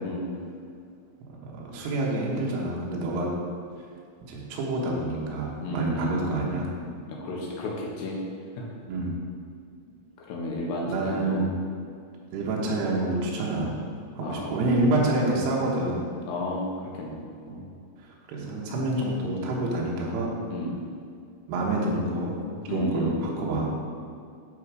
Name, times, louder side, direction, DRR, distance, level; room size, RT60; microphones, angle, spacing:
voice 1, 0.0-0.3 5.6-6.2 7.1-8.2 8.6-8.7 10.3-11.4 14.2-14.6 16.2-17.2 20.5-20.8 22.7-23.1, left 2 dB, 80° left, -2 dB, 3.4 m, -32 dB
voice 2, 1.3-3.4 4.2-6.7 8.9-9.2 10.9-11.6 12.3-13.8 14.2-16.0 17.5-17.6 18.3-20.3 21.5-22.4 22.7-23.7, right 2 dB, 75° right, -3 dB, 3.1 m, -27 dB
11.5 x 4.1 x 4.8 m, 2.3 s
omnidirectional pair, 4.9 m